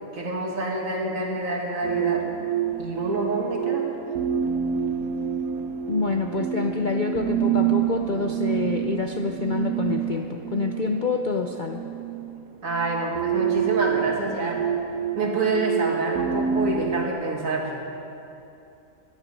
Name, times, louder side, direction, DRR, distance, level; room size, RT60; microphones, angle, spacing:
voice 1, 0.1-2.3 2.8-3.9 12.6-14.7 15.2-17.8, right 2 dB, 65° right, -1 dB, 2.3 m, -27 dB
sound 1, 1.8-17.1, right 9 dB, 85° right, 1.2 m, -27 dB
voice 2, 5.9-11.8, left 4 dB, 50° left, 4 dB, 0.6 m, -27 dB
17.5 x 11.5 x 5.3 m, 2.8 s
omnidirectional pair, 1.5 m